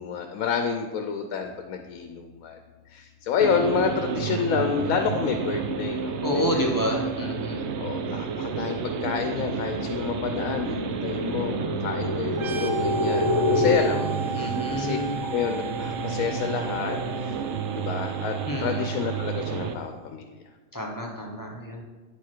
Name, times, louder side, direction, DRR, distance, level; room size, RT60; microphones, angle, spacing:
voice 1, 0.0-2.6 2.9-6.8 7.8-17.3 17.7-18.4 18.6-20.4, left 6 dB, 75° left, 6 dB, 1.0 m, -29 dB
sound 1, 3.4-19.7, right 6 dB, 65° right, 0.8 m, -31 dB
sound 2, 4.2-4.4 4.8-13.8, left 2 dB, 60° left, 1.0 m, -30 dB
voice 2, 6.2-7.7 13.5-15.3 18.5-18.9 20.7-21.8, left 1 dB, 20° left, -1 dB, 0.7 m, -30 dB
sound 3, 12.3-19.8, right 6 dB, 90° right, 0.4 m, -36 dB
9.1 x 4.8 x 4.4 m, 1.3 s
omnidirectional pair, 1.5 m